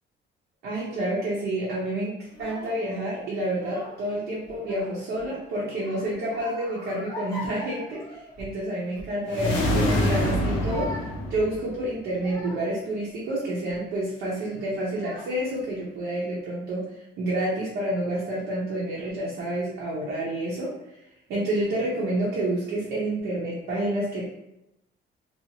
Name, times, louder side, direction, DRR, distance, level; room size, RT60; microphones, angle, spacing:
voice 1, 0.6-11.0 11.3-16.9 17.2-20.7 21.3-24.3, right 1 dB, 70° right, -6 dB, 0.7 m, -29 dB
Child speech kid speaking / Crying sobbing, 2.3-2.8 3.5-4.1 4.4-5.3 5.7-8.6 8.9-9.2 9.7-12.8 13.4-13.8 14.6-14.7 14.9-15.6, left 1 dB, 15° left, 0.5 m, -41 dB
sound 1, 9.3-11.9, equal, 80° left, 0.7 m, -25 dB
2.7 x 2.4 x 2.8 m, 0.89 s
cardioid pair, 165°, 19 cm